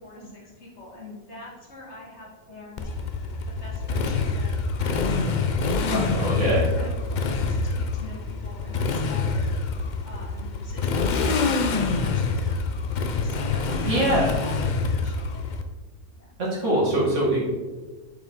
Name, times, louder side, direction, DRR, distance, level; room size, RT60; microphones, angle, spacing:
voice 1, 0.0-2.8 3.5-5.8 6.4-9.8 10.0-12.6 12.9-15.5 16.2-16.3, left 1 dB, 50° left, -4 dB, 2.0 m, -43 dB
Motorcycle, 2.8-15.6, left 4 dB, 85° left, 0.4 m, -26 dB
voice 2, 5.9-6.6 13.9-14.3 16.4-17.5, right 1 dB, 55° right, -5 dB, 2.3 m, -23 dB
7.0 x 5.7 x 3.7 m, 1.2 s
omnidirectional pair, 1.5 m